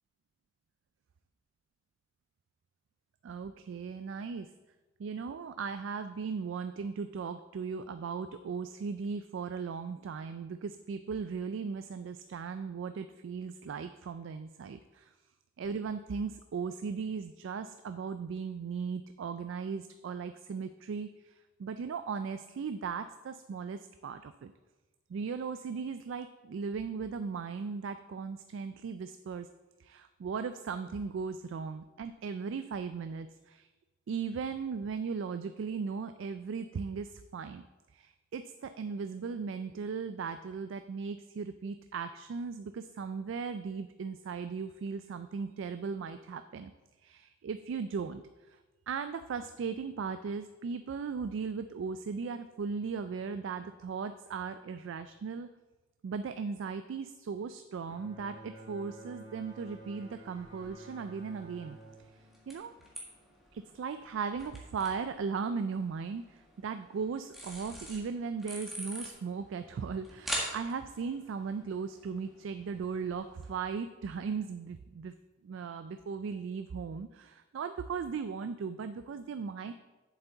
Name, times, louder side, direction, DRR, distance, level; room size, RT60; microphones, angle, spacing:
voice 1, 3.2-4.5 5.0-15.1 15.6-21.3 21.6-24.5 25.1-29.5 29.8-33.7 34.1-37.6 37.9-46.7 47.0-48.2 48.9-55.5 56.0-61.8 62.5-62.7 63.5-75.1 75.4-79.7, right 5 dB, 65° right, 10 dB, 0.3 m, -37 dB
Bowed string instrument, 57.9-63.3, right 1 dB, 25° right, 1.8 m, -51 dB
sound 1, 59.4-73.5, right 1 dB, ahead, 1.6 m, -46 dB
8.1 x 7.3 x 3.9 m, 1.2 s
head